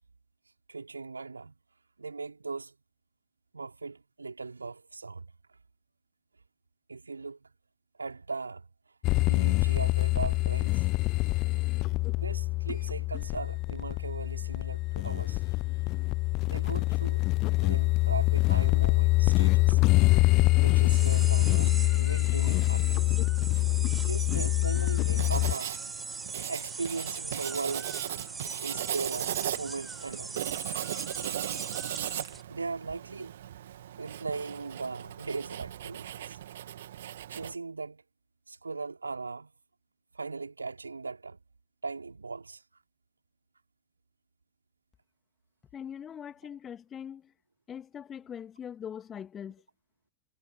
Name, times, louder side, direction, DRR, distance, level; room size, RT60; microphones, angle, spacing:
voice 1, 0.7-1.6 2.0-2.7 3.5-5.3 6.9-7.5 8.0-8.7 9.3-10.8 12.2-15.4 16.4-17.2 17.6-19.8 20.6-23.1 24.0-25.8 26.4-27.9 28.6-30.4 31.1-31.4 32.3-33.4 34.0-36.4 37.3-38.0 38.5-39.5 40.1-41.4 41.8-42.6, right 4 dB, 80° right, 4.5 m, -38 dB
sound 1, 9.0-25.5, left 21 dB, 40° left, 0.7 m, -25 dB
sound 2, 20.9-32.4, right 4 dB, 10° right, 6.0 m, -41 dB
Writing, 25.2-37.5, right 11 dB, 60° right, 2.7 m, -37 dB
voice 2, 45.7-47.3 47.7-49.6, left 8 dB, 25° left, 2.7 m, -42 dB
figure-of-eight pair, 90°, 0 cm